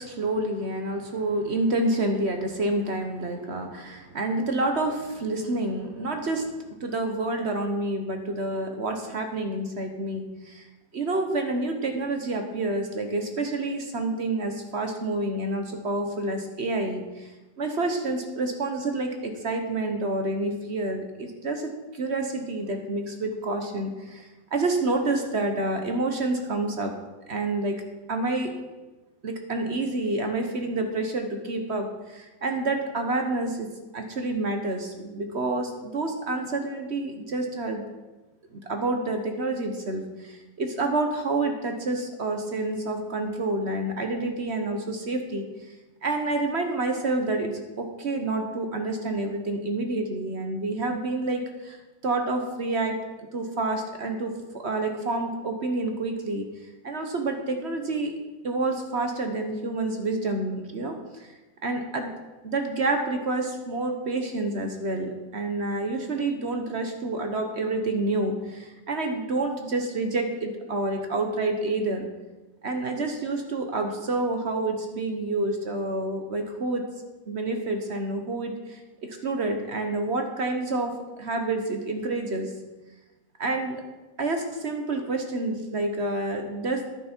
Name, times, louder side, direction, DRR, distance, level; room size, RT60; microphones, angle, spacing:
voice 1, 0.0-6.5 6.8-10.6 10.9-17.3 17.6-26.9 27.3-27.8 28.1-28.5 29.2-37.8 38.5-45.5 46.0-51.8 52.0-56.5 56.8-58.1 58.4-61.3 61.6-62.1 62.4-72.1 72.6-76.8 77.3-82.5 83.4-83.8 84.2-86.8, right 2 dB, 45° right, 4 dB, 1.0 m, -28 dB
10.5 x 9.2 x 4.4 m, 1.2 s
omnidirectional pair, 2.0 m